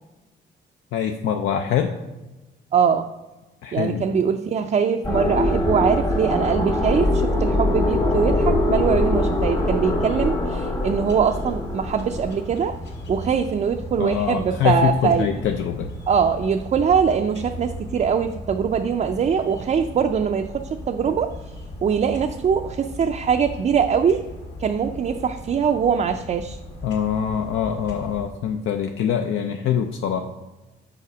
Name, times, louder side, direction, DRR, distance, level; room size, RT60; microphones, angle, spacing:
voice 1, 0.9-1.9 3.6-4.0 14.0-15.9 26.8-30.2, left 8 dB, 80° left, 5 dB, 0.5 m, -24 dB
voice 2, 2.7-3.1 3.7-12.8 13.1-15.3 16.1-21.3 21.8-24.2 24.6-26.6, right 7 dB, 35° right, 5 dB, 0.4 m, -22 dB
sound 1, 5.0-12.9, left 1 dB, 20° left, 0.9 m, -23 dB
sound 2, 10.8-28.3, left 1 dB, 65° left, 2.1 m, -37 dB
5.7 x 4.1 x 6.0 m, 1.1 s
cardioid pair, 90°, 20 cm